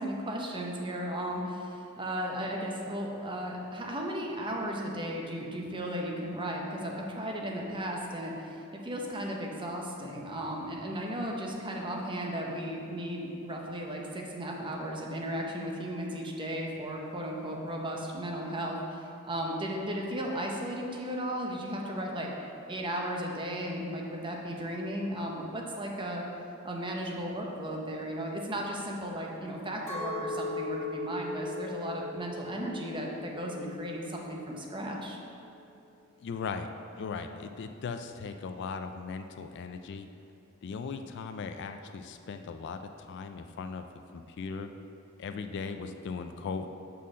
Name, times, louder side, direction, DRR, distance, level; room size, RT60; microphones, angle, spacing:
voice 1, 0.0-22.3 22.7-26.2 26.6-35.2, equal, 25° right, -1 dB, 0.8 m, -35 dB
Chink clink, 29.9-34.2 34.6-35.2, left 2 dB, 15° left, 1.1 m, -38 dB
voice 2, 36.2-36.7 37.0-40.1 40.6-43.9 44.1-44.7 45.2-46.7, left 5 dB, 55° left, 8 dB, 0.3 m, -38 dB
5.5 x 4.2 x 6.2 m, 2.7 s
head